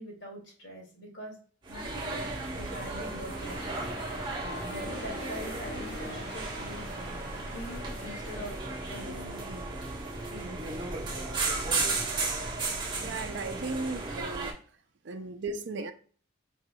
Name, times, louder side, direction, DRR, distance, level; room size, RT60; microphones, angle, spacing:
voice 1, 0.0-1.4 1.7-8.6 8.9-9.7 10.3-10.9 15.1-15.2, equal, 70° left, -1 dB, 2.2 m, -44 dB
sound 1, 1.6-14.5, right 3 dB, 25° right, 1.2 m, -35 dB
sound 2, 2.2-12.5, left 1 dB, 50° left, 1.7 m, -46 dB
voice 2, 13.0-14.5 15.0-15.9, right 3 dB, 60° right, 5 dB, 0.4 m, -36 dB
4.9 x 4.4 x 2.3 m, 0.44 s
head